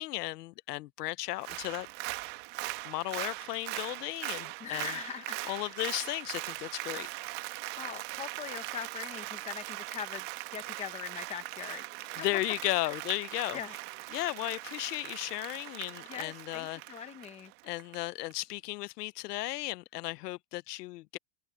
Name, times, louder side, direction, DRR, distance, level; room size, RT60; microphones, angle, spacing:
voice 1, 0.0-1.9 2.8-5.0 5.4-7.1 12.2-13.6 14.1-16.8 17.6-21.2, left 19 dB, 85° left, 0.9 m, -35 dB
Applause, 1.3-18.0 18.3-18.4, right 22 dB, 45° right, 1.4 m, -40 dB
voice 2, 4.6-5.7 7.7-10.2 10.5-11.9 12.1-12.4 13.5-13.8 16.0-17.5, left 9 dB, 15° left, 0.8 m, -41 dB
supercardioid pair, 160°, 46 cm